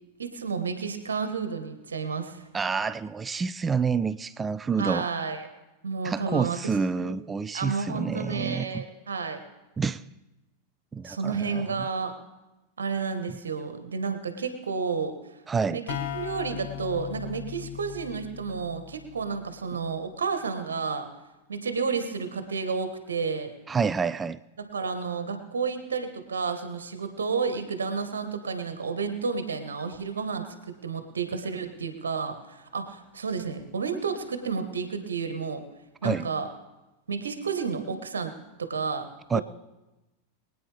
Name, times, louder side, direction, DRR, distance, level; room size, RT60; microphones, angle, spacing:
voice 1, 0.2-2.4 4.8-5.5 5.8-6.6 6.9-7.1 7.5-9.4 11.0-12.1 12.8-15.2 15.7-21.1 21.5-23.5 24.7-35.6 36.0-36.5 37.1-38.3 38.6-39.1, right 5 dB, 70° right, 1.5 m, -31 dB
voice 2, 2.5-5.1 6.0-8.9 9.8-10.0 10.9-11.9 15.5-15.8 23.7-24.4 36.0-36.3 39.3-39.4, right 5 dB, 15° right, 0.4 m, -28 dB
sound 1, 15.9-19.5, left 10 dB, 50° left, 1.3 m, -38 dB
23.5 x 9.2 x 3.5 m
figure-of-eight pair, 90°, 0 cm